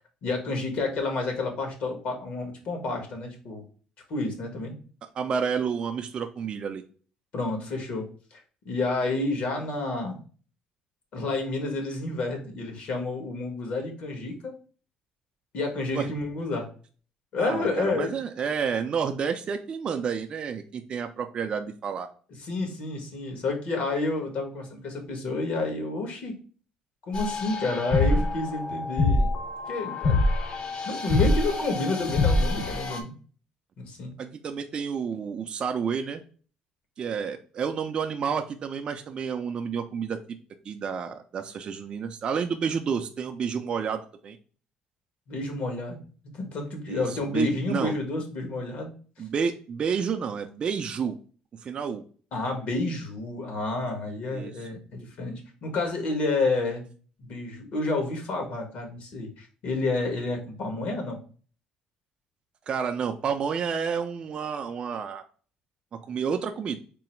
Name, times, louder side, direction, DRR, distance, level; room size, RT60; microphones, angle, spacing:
voice 1, 0.2-3.6 4.1-4.7 7.3-8.4 8.6-10.2 11.1-14.5 15.5-16.7 17.3-18.1 22.4-26.4 27.1-29.3 29.7-30.2 30.8-33.1 33.8-34.1 45.3-46.0 46.3-48.9 52.3-56.8 57.2-61.2, left 2 dB, 60° left, 3 dB, 1.3 m, -30 dB
voice 2, 5.2-6.8 15.9-16.1 17.4-22.1 34.2-36.2 37.0-40.2 40.6-44.4 46.9-47.9 49.2-51.2 51.6-52.0 54.3-54.7 62.7-65.2 65.9-66.8, right 6 dB, 40° right, 5 dB, 0.4 m, -30 dB
sound 1, 27.1-33.0, left 2 dB, 40° left, 0.7 m, -25 dB
3.7 x 2.0 x 4.4 m, 0.40 s
cardioid pair, 120°, 3 cm